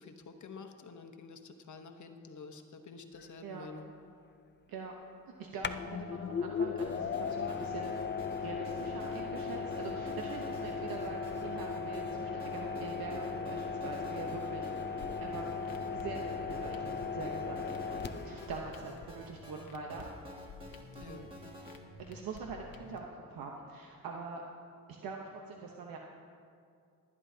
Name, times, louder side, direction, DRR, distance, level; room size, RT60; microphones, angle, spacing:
voice 1, 0.0-3.9 21.0-21.3, left 4 dB, 55° left, 6 dB, 1.0 m, -49 dB
sound 1, 3.2-3.3 5.6-18.6, left 5 dB, 30° left, 0.5 m, -37 dB
voice 2, 5.4-7.9 8.4-15.5 15.9-17.6 17.9-20.0 20.3-20.4 20.9-21.3 22.1-24.4 25.0-26.0, right 4 dB, 80° right, 0 dB, 1.0 m, -44 dB
sound 2, 6.8-21.8, equal, 15° right, 2.5 m, -51 dB
sound 3, 15.0-23.0, left 4 dB, 75° left, 1.2 m, -52 dB
21.0 x 9.8 x 2.8 m, 2.3 s
cardioid pair, 70°, 35 cm